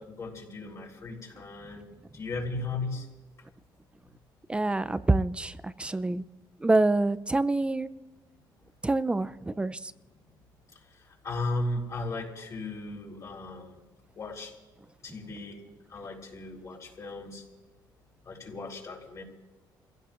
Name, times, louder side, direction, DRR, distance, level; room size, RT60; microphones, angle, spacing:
voice 1, 0.0-1.9 2.1-3.1 11.2-13.8 14.2-14.5 15.0-15.6 15.9-17.4 18.3-19.2, left 2 dB, 40° left, 4.0 m, -36 dB
voice 2, 4.5-6.2 6.6-7.9 8.8-9.9, right 2 dB, 15° right, 0.5 m, -26 dB
29.0 x 16.0 x 2.5 m
cardioid pair, 105°, 8 cm